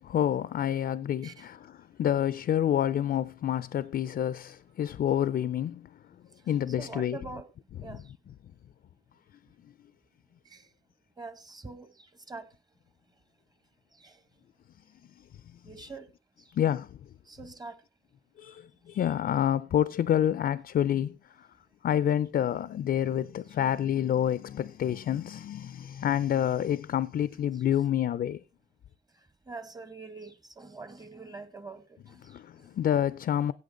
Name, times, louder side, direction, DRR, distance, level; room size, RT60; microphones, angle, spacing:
voice 1, 0.0-5.9 6.5-7.2 7.8-8.0 16.5-17.0 18.4-21.5 21.8-28.4 32.2-33.5, left 10 dB, 50° left, 0.5 m, -28 dB
voice 2, 6.7-7.5 7.8-8.1 10.4-10.7 11.2-12.5 13.9-14.2 15.6-16.1 16.4-16.5 17.2-17.8 27.7-27.8 29.5-32.7, right 3 dB, 20° right, 1.1 m, -44 dB
17.0 x 5.9 x 3.9 m
cardioid pair, 90°, 20 cm